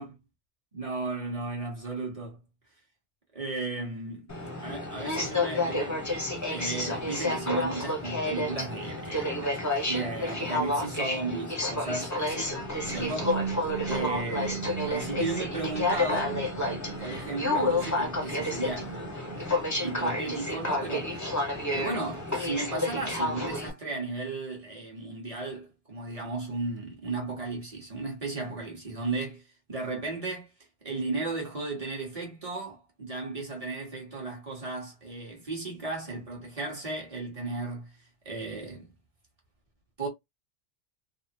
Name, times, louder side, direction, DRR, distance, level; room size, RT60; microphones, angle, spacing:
voice 1, 0.7-2.4 3.3-4.3 4.6-6.0 6.5-9.6 9.9-13.4 13.9-16.4 17.0-19.0 19.8-21.1 21.7-29.4 29.7-30.5 30.8-37.9 38.2-38.9 40.0-40.1, right 3 dB, 30° right, 1.1 m, -35 dB
Aircraft, 4.3-23.7, left 2 dB, 20° left, 0.6 m, -30 dB
sound 1, 12.3-20.1, right 8 dB, 75° right, 0.9 m, -39 dB
3.3 x 2.0 x 2.7 m
omnidirectional pair, 1.2 m